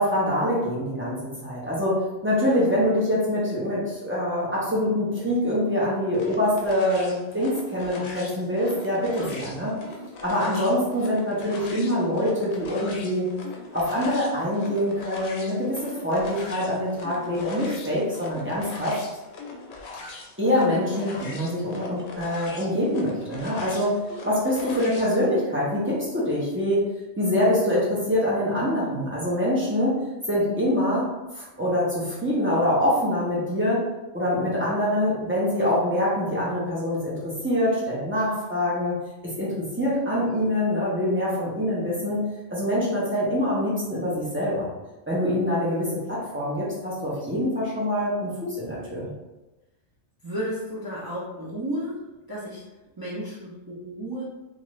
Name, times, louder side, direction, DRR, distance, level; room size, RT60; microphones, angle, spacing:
voice 1, 0.0-9.7 10.2-13.3 13.7-19.0 20.4-23.9 24.2-26.8 27.2-30.0 30.3-33.8 34.1-39.0 39.2-42.2 42.5-44.7 45.1-49.1, left 1 dB, 15° right, -8 dB, 0.7 m, -25 dB
sound 1, 6.1-25.1, left 3 dB, 70° left, 0.8 m, -41 dB
voice 2, 50.2-52.6 53.0-54.2, equal, 35° right, -8 dB, 0.3 m, -33 dB
2.5 x 2.4 x 3.0 m, 1.0 s
omnidirectional pair, 1.2 m